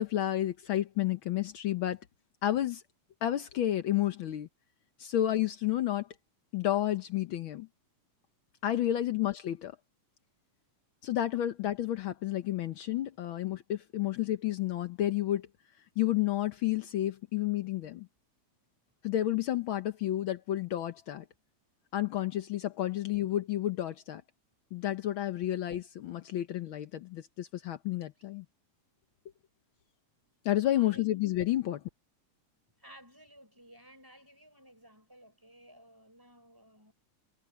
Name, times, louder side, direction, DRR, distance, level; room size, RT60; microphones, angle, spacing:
voice 1, 0.0-2.0 2.4-2.8 3.2-4.5 5.0-6.1 6.5-7.7 8.6-9.7 11.0-15.4 16.0-18.1 19.0-21.2 21.9-24.2 24.7-28.4 30.4-31.8, left 13 dB, 85° left, 1.1 m, -31 dB
voice 2, 30.6-31.1 32.8-36.9, equal, 5° right, 4.6 m, -55 dB
omnidirectional pair, 3.5 m